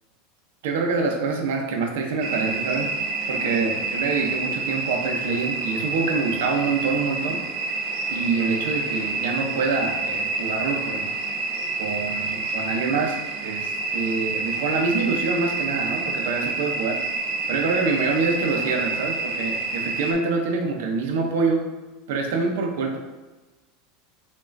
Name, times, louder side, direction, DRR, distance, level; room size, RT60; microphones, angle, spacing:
voice 1, 0.6-2.9 3.3-7.4 8.1-11.1 11.8-17.0 17.5-21.7 22.1-23.0, right 4 dB, 85° right, 2 dB, 0.7 m, -26 dB
sound 1, 2.2-20.1, right 3 dB, 45° right, 0.4 m, -28 dB
5.3 x 2.4 x 2.6 m, 1.2 s
supercardioid pair, 180°, 0 cm